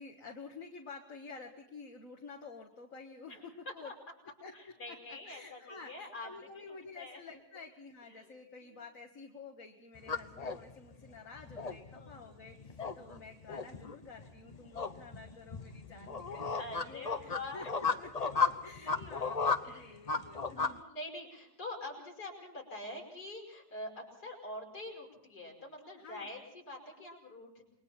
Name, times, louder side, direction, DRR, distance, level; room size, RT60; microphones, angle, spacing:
voice 1, 0.0-3.9 4.4-19.4 19.7-20.8 26.0-26.3, left 4 dB, 55° left, 1 dB, 2.1 m, -50 dB
voice 2, 4.5-6.3 6.5-7.2 8.1-8.3 8.6-8.8 11.9-12.1 13.0-13.1 14.7-15.0 16.6-18.0 18.3-18.5 18.8-19.3 19.6-20.0 20.6-27.7, left 2 dB, 80° left, 0 dB, 5.9 m, -46 dB
sound 1, 9.9-20.8, left 5 dB, 30° left, 0.8 m, -35 dB
28.5 x 22.0 x 4.4 m, 0.72 s
omnidirectional pair, 1.7 m